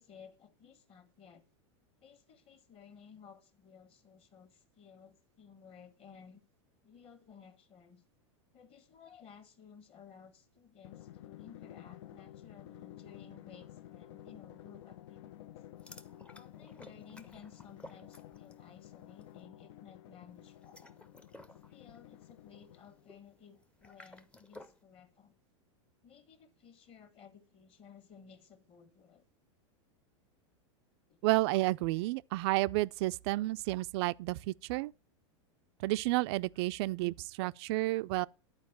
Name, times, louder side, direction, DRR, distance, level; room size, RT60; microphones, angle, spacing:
voice 1, 0.0-1.4 2.0-6.4 6.8-8.0 8.5-15.6 16.3-20.8 21.7-25.3 26.0-29.3 31.1-31.2 35.8-35.9, left 7 dB, 35° left, 1.7 m, -57 dB
Drum, 10.8-23.2, left 12 dB, 70° left, 0.5 m, -52 dB
sound 1, 15.8-18.7 19.0-19.3 20.5-24.8, left 1 dB, 10° left, 0.7 m, -56 dB
voice 2, 31.2-34.9 35.8-38.3, right 19 dB, 60° right, 0.4 m, -31 dB
10.5 x 4.5 x 7.2 m
hypercardioid pair, 115°, 16 cm